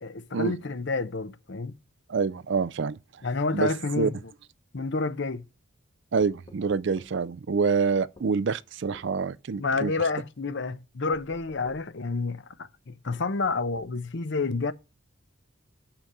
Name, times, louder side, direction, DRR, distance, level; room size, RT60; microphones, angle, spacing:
voice 1, 0.0-1.7 3.2-4.1 4.7-5.4 9.6-14.7, left 3 dB, 55° left, 0.7 m, -29 dB
voice 2, 2.1-3.2 3.5-4.1 6.1-9.9, right 5 dB, 55° right, 0.4 m, -27 dB
sound 1, 6.2-7.2 8.2-8.3 8.9-9.1 9.7-9.9 11.1-11.9 13.1-14.0, left 1 dB, 30° left, 1.8 m, -51 dB
6.7 x 5.9 x 7.2 m
head